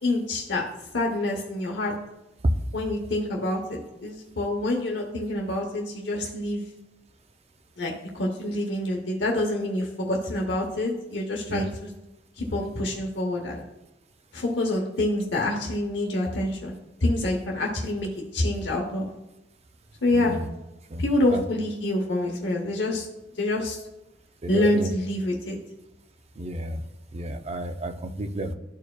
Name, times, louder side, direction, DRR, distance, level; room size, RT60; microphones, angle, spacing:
voice 1, 0.0-0.6 0.9-1.9 2.7-6.6 7.8-11.9 12.4-13.7 14.3-16.8 17.0-19.1 20.0-20.4 21.0-23.1 23.4-23.8 24.5-25.6, left 1 dB, 75° left, 0 dB, 0.9 m, -26 dB
voice 2, 20.1-20.5 20.9-21.0 21.3-21.4 24.4-24.9 26.4-26.8 27.1-28.5, right 1 dB, 35° right, 7 dB, 0.5 m, -32 dB
12.5 x 4.5 x 2.3 m, 0.93 s
head